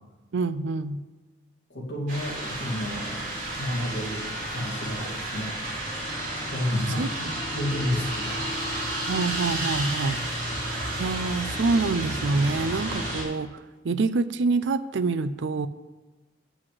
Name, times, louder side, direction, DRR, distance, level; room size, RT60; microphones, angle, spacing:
voice 1, 0.3-1.0 7.0-7.1 7.8-7.9 9.1-10.3 11.0-15.7, right 3 dB, 65° right, 14 dB, 0.4 m, -26 dB
voice 2, 1.7-5.6 6.5-8.7 10.5-10.6, left 1 dB, 60° left, -4 dB, 2.6 m, -31 dB
sound 1, 2.1-13.2, right 1 dB, 40° right, 3.4 m, -31 dB
7.9 x 6.3 x 7.6 m, 1.2 s
head